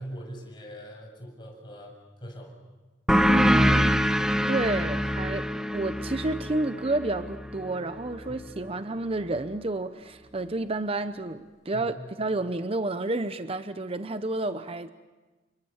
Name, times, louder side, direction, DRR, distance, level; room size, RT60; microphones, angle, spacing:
voice 1, 0.0-1.9 2.2-2.5 8.3-8.5 11.7-12.1, equal, 25° left, 1 dB, 7.3 m, -41 dB
sound 1, 3.1-8.3, equal, 5° right, 1.0 m, -25 dB
voice 2, 3.3-4.0 4.5-5.5 5.7-14.9, right 2 dB, 30° right, 10 dB, 0.8 m, -30 dB
29.5 x 24.5 x 7.2 m, 1.2 s
head